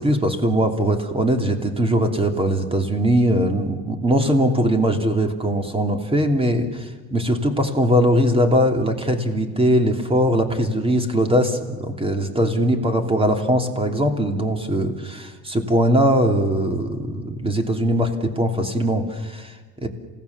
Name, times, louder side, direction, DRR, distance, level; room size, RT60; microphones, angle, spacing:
voice 1, 0.0-19.9, equal, 15° right, 6 dB, 2.9 m, -21 dB
28.0 x 18.0 x 7.2 m, 1.4 s
supercardioid pair, 105°, 42 cm